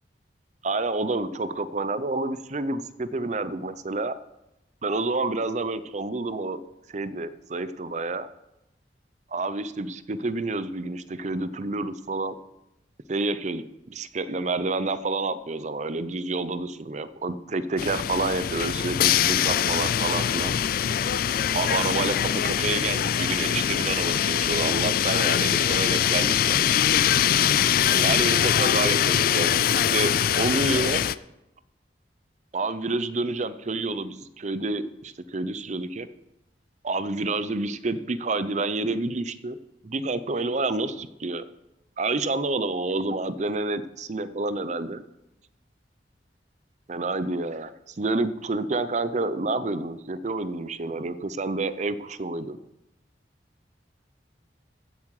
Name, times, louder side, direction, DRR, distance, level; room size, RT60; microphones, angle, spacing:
voice 1, 0.6-4.1 4.8-6.6 6.9-8.3 9.3-12.4 13.1-20.5 21.5-26.6 27.8-31.0 32.5-36.1 36.8-39.6 39.8-41.4 42.0-45.0 46.9-52.6, right 3 dB, 40° right, 14 dB, 0.6 m, -29 dB
Cruiseship - inside crew area laundry, 17.8-31.1, left 9 dB, 55° left, 0.3 m, -23 dB
15.0 x 7.4 x 4.8 m, 0.90 s
head